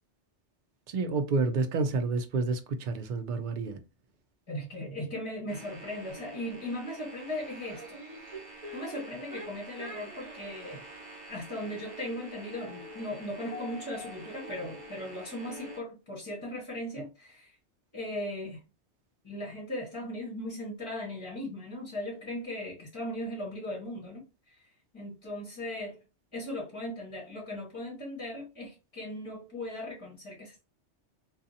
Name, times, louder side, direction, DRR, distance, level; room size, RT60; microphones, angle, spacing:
voice 1, 0.9-3.8, right 3 dB, 60° right, 0.5 m, -29 dB
voice 2, 4.5-8.0 8.5-10.8 11.3-17.6 17.9-18.6 19.2-24.5 24.9-26.0 26.3-30.6, left 1 dB, 25° left, 1.0 m, -38 dB
sound 1, 5.5-15.8, equal, 30° right, 1.0 m, -45 dB
2.6 x 2.3 x 2.5 m
omnidirectional pair, 1.2 m